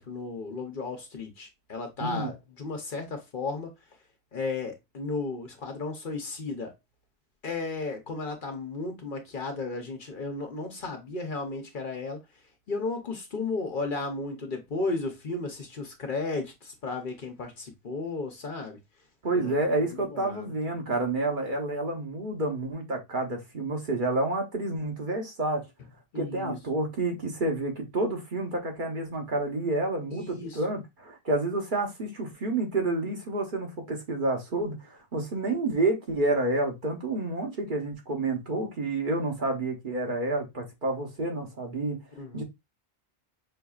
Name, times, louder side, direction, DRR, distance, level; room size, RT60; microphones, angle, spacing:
voice 1, 0.0-3.7 4.3-6.7 7.4-12.2 12.7-18.8 19.3-20.5 26.1-26.6 30.1-30.6 42.2-42.4, left 3 dB, 55° left, 1.0 m, -34 dB
voice 2, 2.0-2.3 19.2-25.6 26.1-42.0 42.3-42.4, right 2 dB, 50° right, 1.1 m, -29 dB
5.5 x 2.7 x 2.3 m
omnidirectional pair, 1.1 m